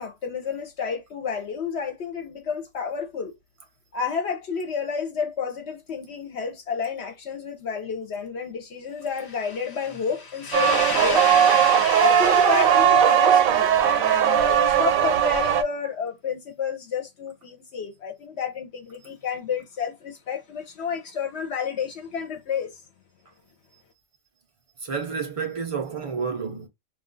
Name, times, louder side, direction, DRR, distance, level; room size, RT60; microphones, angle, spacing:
voice 1, 0.0-3.3 3.9-22.8, left 6 dB, 60° left, 0.8 m, -30 dB
sound 1, 10.5-15.6, right 9 dB, 80° right, 1.0 m, -19 dB
voice 2, 24.8-26.7, right 5 dB, 65° right, 0.3 m, -30 dB
2.3 x 2.2 x 3.7 m
omnidirectional pair, 1.4 m